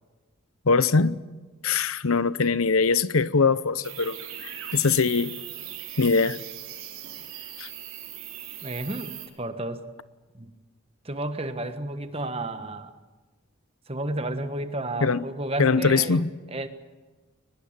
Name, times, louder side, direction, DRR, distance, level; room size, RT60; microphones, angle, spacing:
voice 1, 0.6-1.2 1.6-5.3 6.0-6.4 7.6-7.7 15.0-15.3 15.6-16.3, left 4 dB, 80° left, 0.8 m, -22 dB
sound 1, 3.8-9.3, right 11 dB, 80° right, 4.7 m, -39 dB
voice 2, 8.6-9.8 10.3-10.5 11.0-12.9 13.9-16.7, right 1 dB, 25° right, 1.4 m, -32 dB
23.0 x 20.5 x 8.9 m
head